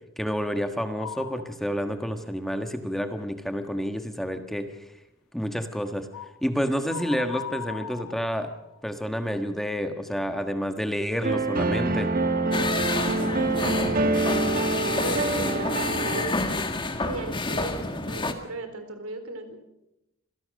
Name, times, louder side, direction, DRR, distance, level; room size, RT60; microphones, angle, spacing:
voice 1, 0.2-4.7 5.3-6.1 6.4-8.5 8.8-12.1, equal, ahead, 7 dB, 1.5 m, -29 dB
sound 1, 1.0-1.6 2.1-2.2 6.1-6.4 6.9-8.8, left 9 dB, 85° left, 1.0 m, -38 dB
sound 2, 11.2-16.2, right 2 dB, 40° right, 1.5 m, -26 dB
sound 3, 12.5-18.3, left 2 dB, 25° left, 1.9 m, -29 dB
voice 2, 13.5-13.9 15.0-16.5 17.0-19.6, right 2 dB, 85° right, 8 dB, 4.0 m, -36 dB
26.0 x 17.5 x 6.5 m, 0.88 s
head